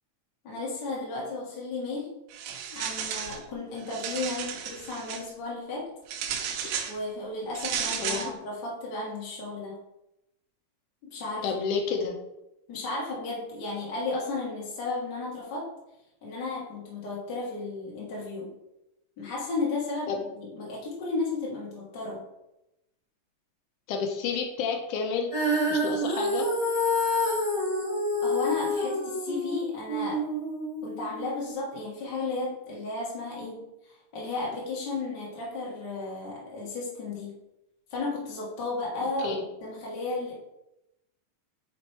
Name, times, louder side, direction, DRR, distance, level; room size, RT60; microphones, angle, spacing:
voice 1, 0.4-2.1 2.7-5.9 6.9-9.8 11.0-11.5 12.7-15.7 16.2-18.5 19.2-22.2 28.2-30.2 30.8-37.3 37.9-40.3, left 3 dB, 60° left, -5 dB, 1.1 m, -34 dB
sound 1, 2.3-3.4 3.8-5.2 6.1-7.0 7.6-8.3, right 8 dB, 85° right, 2.4 m, -33 dB
voice 2, 8.0-8.3 11.4-12.2 20.1-20.2 23.9-25.3 25.7-26.5 39.2-39.4, left 5 dB, 80° left, 3 dB, 1.8 m, -30 dB
Female singing, 25.3-31.5, left 1 dB, 25° left, 1.9 m, -28 dB
5.1 x 4.6 x 4.3 m, 0.90 s
omnidirectional pair, 4.2 m